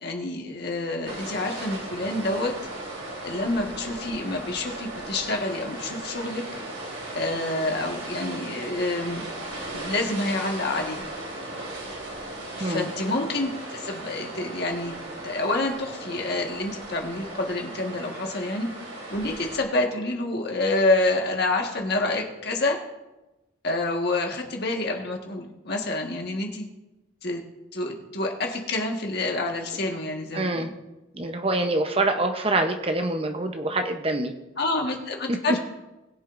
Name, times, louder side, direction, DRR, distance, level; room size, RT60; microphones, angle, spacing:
voice 1, 0.0-2.5 3.2-6.4 7.1-9.2 9.7-11.0 12.6-15.0 15.2-22.8 23.6-26.7 27.2-27.4 27.7-30.7 34.6-35.6, left 2 dB, 50° left, 1 dB, 1.6 m, -28 dB
sound 1, 1.0-19.6, right 2 dB, 80° right, 3.7 m, -37 dB
voice 2, 30.3-30.7 31.1-34.3 35.3-35.6, right 2 dB, 30° right, 5 dB, 0.8 m, -25 dB
21.5 x 7.5 x 2.6 m, 1.0 s
head